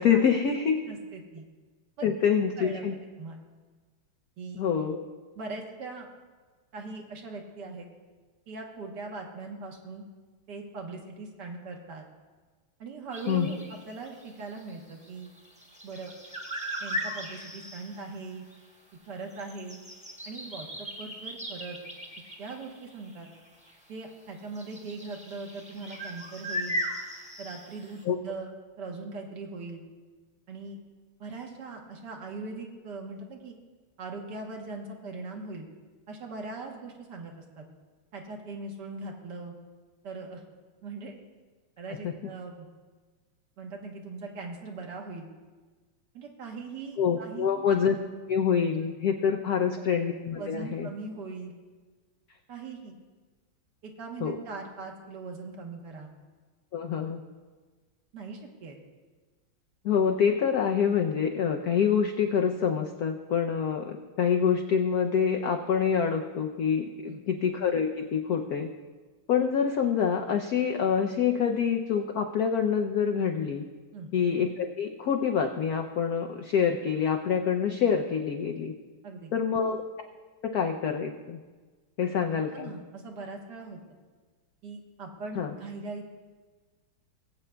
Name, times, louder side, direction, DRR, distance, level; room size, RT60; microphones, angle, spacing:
voice 1, 0.0-0.8 2.0-2.9 4.6-5.0 13.3-13.5 28.0-28.2 47.0-47.9 48.3-50.9 54.2-54.4 56.7-57.2 59.8-68.7 69.3-73.6 74.1-78.7 79.3-79.8 80.4-81.4 82.0-82.7 85.4-85.5, left 7 dB, 80° left, 4 dB, 0.8 m, -26 dB
voice 2, 0.9-1.5 2.0-2.1 2.6-2.9 3.2-3.4 4.4-4.6 5.4-6.1 6.7-7.9 8.5-10.0 10.5-12.1 12.8-15.3 15.8-16.1 16.8-18.4 19.1-19.8 20.2-21.8 22.4-23.3 23.9-26.8 27.4-29.8 30.5-30.8 31.2-33.6 34.0-35.7 36.1-37.6 38.1-39.5 40.0-40.4 40.8-41.1 41.8-42.7 43.6-45.3 46.1-47.7 49.6-49.9 50.4-51.6 52.5-53.0 53.8-56.1 58.1-58.8 67.1-67.2 73.9-74.1 79.0-79.3 82.5-83.8 84.6-86.1, right 3 dB, 60° right, 2 dB, 1.5 m, -40 dB
sound 1, 13.1-18.3 18.5-18.6 19.0-23.8 24.4-28.0, equal, 5° right, 0.9 m, -38 dB
20.5 x 8.2 x 2.2 m, 1.4 s
omnidirectional pair, 2.2 m